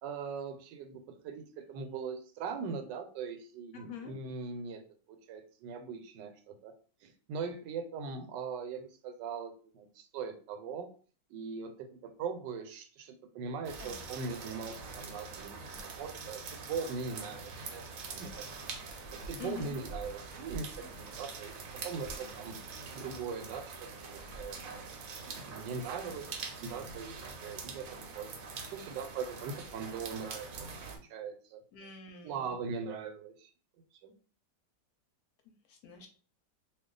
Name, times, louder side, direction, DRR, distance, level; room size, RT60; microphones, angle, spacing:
voice 1, 0.0-4.8 5.1-6.7 7.0-10.9 11.3-17.9 18.1-18.6 19.1-21.5 21.8-22.6 22.9-24.8 25.2-27.1 27.4-27.9 28.1-28.3 28.7-30.7 31.0-31.6 32.2-33.5 34.0-34.1, right 5 dB, 85° right, 7 dB, 1.2 m, -40 dB
voice 2, 3.7-4.1 13.8-13.9 19.4-19.8 31.7-32.5 35.7-36.1, left 8 dB, 70° left, 4 dB, 1.0 m, -45 dB
sound 1, 13.6-31.0, right 4 dB, 65° right, 0.9 m, -44 dB
2.6 x 2.3 x 3.7 m, 0.41 s
omnidirectional pair, 1.8 m